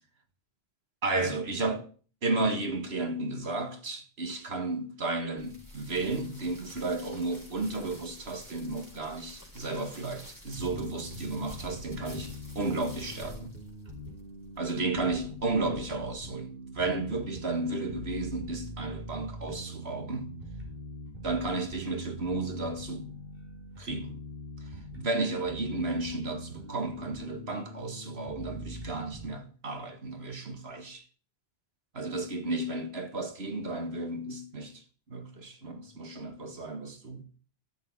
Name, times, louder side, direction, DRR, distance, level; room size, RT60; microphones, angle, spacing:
voice 1, 1.0-1.9 2.2-13.5 14.6-20.4 21.2-23.1 23.8-24.2 25.0-31.0 31.9-34.8 35.1-37.2, right 2 dB, 85° right, 2.2 m, -33 dB
sound 1, 5.4-16.3, left 2 dB, 20° right, 5.2 m, -49 dB
sound 2, 10.5-29.3, equal, 65° right, 5.8 m, -43 dB
13.0 x 7.4 x 8.6 m
omnidirectional pair, 1.0 m